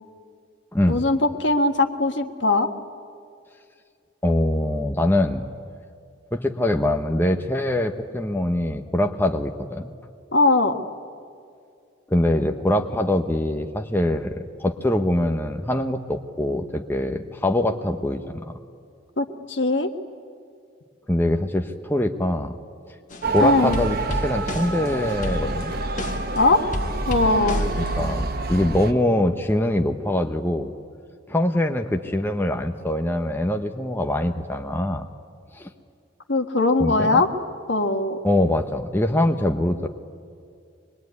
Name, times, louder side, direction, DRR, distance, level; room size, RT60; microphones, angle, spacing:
voice 1, 0.9-2.7 10.3-10.7 19.2-19.9 23.4-23.8 26.3-26.6 27.1-27.6 36.3-37.3 37.7-38.2, left 2 dB, 65° left, 6 dB, 1.6 m, -20 dB
voice 2, 4.2-5.5 6.3-9.9 12.1-18.5 21.1-22.5 22.9-23.0 23.3-25.7 27.8-30.7 31.3-35.0 35.5-35.7 36.8-37.2 38.2-39.9, left 1 dB, 10° left, 5 dB, 0.9 m, -23 dB
sound 1, 23.1-23.4 23.7-26.4 26.7-28.1, equal, 40° left, 1.6 m, -31 dB
Motor vehicle (road) / Siren, 23.2-28.9, right 3 dB, 50° right, 1.2 m, -28 dB
24.5 x 21.5 x 9.5 m, 2.3 s
head